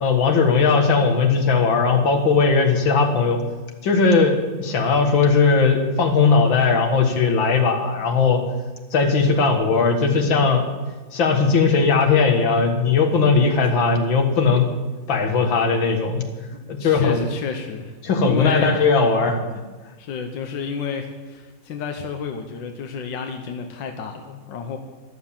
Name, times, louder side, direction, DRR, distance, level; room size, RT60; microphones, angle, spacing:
voice 1, 0.0-3.4 3.8-8.4 8.9-10.7 11.1-14.7 15.1-16.3 16.7-17.2 18.0-19.4, left 4 dB, 90° left, 4 dB, 2.4 m, -18 dB
voice 2, 16.8-18.0 18.2-18.9 20.0-24.8, left 6 dB, 75° left, 4 dB, 1.7 m, -30 dB
13.0 x 12.5 x 7.3 m, 1.3 s
omnidirectional pair, 2.0 m